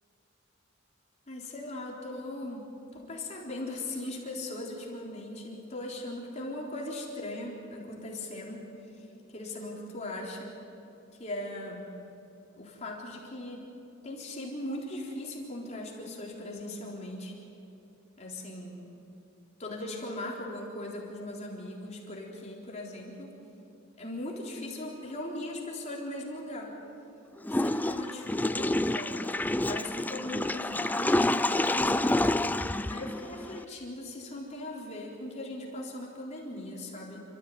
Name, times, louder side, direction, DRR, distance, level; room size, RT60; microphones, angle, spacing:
voice 1, 1.3-8.6 8.9-9.1 9.3-10.5 11.2-11.9 12.6-13.6 14.0-17.3 18.2-18.8 19.6-23.4 24.0-26.7 27.5-29.3 29.7-32.3 32.9-37.2, left 1 dB, 35° left, -2 dB, 3.8 m, -39 dB
Water / Toilet flush, 27.4-33.6, left 1 dB, 10° left, 0.4 m, -28 dB
28.5 x 14.5 x 9.3 m, 3.0 s
head